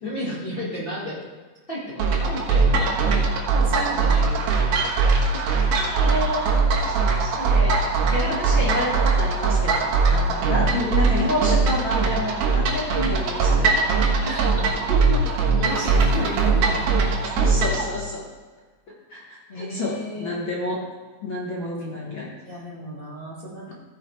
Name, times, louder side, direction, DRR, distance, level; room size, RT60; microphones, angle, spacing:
voice 1, 0.0-1.2 1.7-3.0 3.5-5.0 5.3-5.4 8.5-8.9 10.1-10.7 14.2-17.2 17.4-17.5 19.5-20.3 22.0-23.7, right 1 dB, 25° left, -7 dB, 1.1 m, -34 dB
sound 1, 2.0-17.8, right 4 dB, 75° right, 3.1 m, -21 dB
voice 2, 5.8-13.9 17.3-18.2 19.1-20.8 21.2-22.3 23.7-23.8, left 1 dB, 75° left, -4 dB, 1.1 m, -29 dB
15.0 x 5.8 x 4.5 m, 1.3 s
omnidirectional pair, 4.3 m